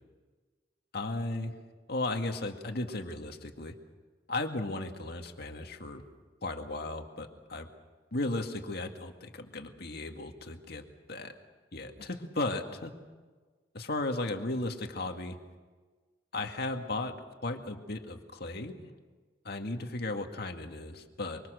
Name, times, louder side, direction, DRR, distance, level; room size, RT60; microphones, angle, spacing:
voice 1, 0.9-1.5 1.9-3.7 4.3-6.0 6.4-7.7 8.1-10.8 11.1-11.3 11.7-12.9 13.7-15.4 16.3-17.1 17.4-18.9 19.4-21.4, left 2 dB, 60° left, 4 dB, 2.0 m, -35 dB
24.5 x 24.5 x 6.6 m, 1.4 s
head